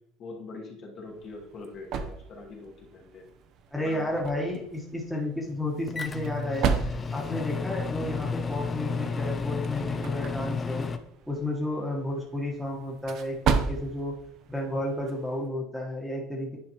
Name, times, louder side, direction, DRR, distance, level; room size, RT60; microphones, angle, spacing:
voice 1, 0.2-3.2 3.8-4.2, left 3 dB, 40° left, 1 dB, 1.2 m, -43 dB
sound 1, 1.0-15.5, right 6 dB, 45° right, 0.6 m, -35 dB
voice 2, 3.7-6.8 7.1-10.9 11.3-14.2 14.5-16.6, left 1 dB, ahead, -4 dB, 1.1 m, -32 dB
Microwave oven, 5.9-11.0, left 5 dB, 20° left, 0.4 m, -32 dB
9.5 x 4.9 x 2.9 m, 0.74 s
cardioid pair, 155°, 0 cm